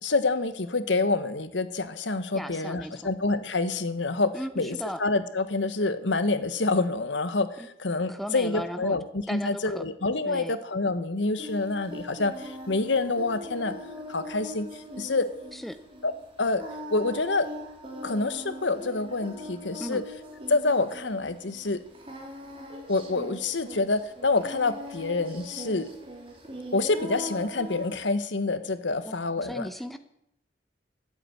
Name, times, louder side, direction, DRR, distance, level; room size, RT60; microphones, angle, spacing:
voice 1, 0.0-13.7 14.1-15.3 16.0-16.1 16.4-16.6 16.9-17.5 18.0-20.0 20.5-21.8 22.9-25.9 26.7-29.7, left 3 dB, 80° left, 11 dB, 1.2 m, -27 dB
voice 2, 2.3-3.0 4.3-5.0 8.1-9.0 9.3-9.8 10.2-10.6 15.5-15.8 19.8-20.0 29.1-30.0, equal, ahead, 9 dB, 0.7 m, -36 dB
Singing, 11.4-28.0, equal, 30° right, 3.2 m, -41 dB
12.5 x 8.5 x 9.1 m, 0.77 s
head